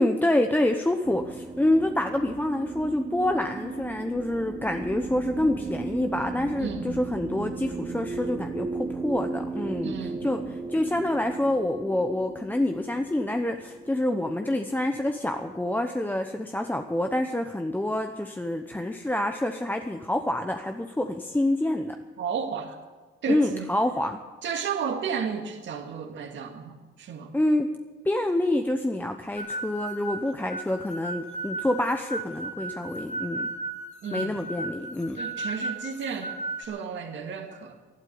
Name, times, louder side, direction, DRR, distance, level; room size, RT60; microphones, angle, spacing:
voice 1, 0.0-10.4 10.7-22.0 23.3-24.2 27.3-27.8 28.0-33.5 34.1-35.2, left 1 dB, 10° left, 5 dB, 0.9 m, -27 dB
sound 1, 1.0-15.6, right 3 dB, 25° right, 1.1 m, -36 dB
voice 2, 9.8-10.2 22.2-22.8 23.2-23.7 24.4-27.3 34.0-34.5 35.1-37.8, right 6 dB, 70° right, 3 dB, 2.1 m, -33 dB
sound 2, 29.4-36.6, right 2 dB, 35° left, 2.1 m, -35 dB
12.0 x 12.0 x 9.5 m, 1.4 s
cardioid pair, 90°, 20 cm